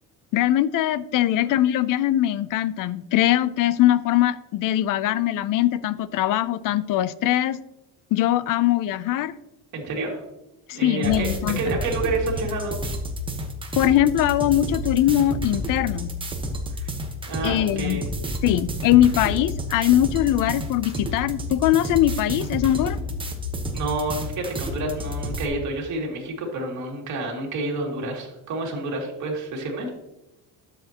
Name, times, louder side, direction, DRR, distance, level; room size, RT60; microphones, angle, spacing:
voice 1, 0.3-7.6 8.1-9.4 10.7-11.8 13.8-16.1 17.4-18.0 18.4-23.0, left 13 dB, 55° left, 17 dB, 0.5 m, -21 dB
voice 2, 9.7-10.2 10.7-11.3 11.6-12.8 16.8-16.9 17.2-18.0 23.7-29.9, right 2 dB, 50° right, -1 dB, 2.6 m, -29 dB
sound 1, 11.0-25.5, equal, 15° right, 1.1 m, -30 dB
12.0 x 7.4 x 2.9 m, 0.92 s
cardioid pair, 160°, 39 cm